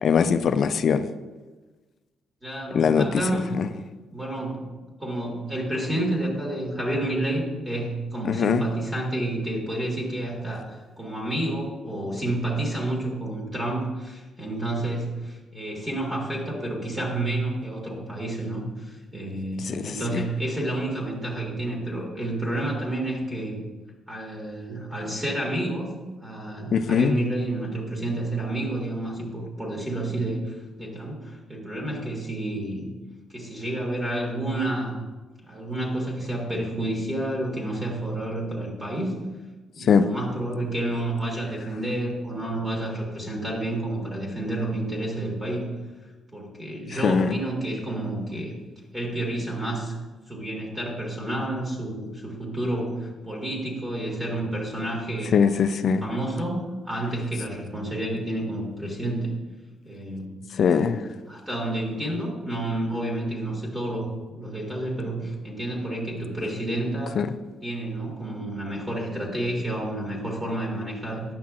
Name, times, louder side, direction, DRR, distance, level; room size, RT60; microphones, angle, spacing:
voice 1, 0.0-1.1 2.7-3.1 3.6-3.7 8.3-8.6 19.7-20.2 26.7-27.2 39.9-40.1 47.0-47.4 55.3-56.0 60.6-61.0 67.2-67.3, left 6 dB, 60° left, 11 dB, 0.3 m, -21 dB
voice 2, 2.4-3.6 4.1-4.7 5.0-23.6 24.1-25.9 26.2-32.9 33.3-34.9 35.4-39.1 39.7-45.7 46.3-48.5 48.9-49.9 50.3-55.3 55.7-59.3 59.8-61.0 61.3-67.1 67.6-71.2, right 1 dB, 20° right, -2 dB, 1.6 m, -30 dB
9.4 x 5.8 x 2.4 m, 1.2 s
cardioid pair, 90°, 0 cm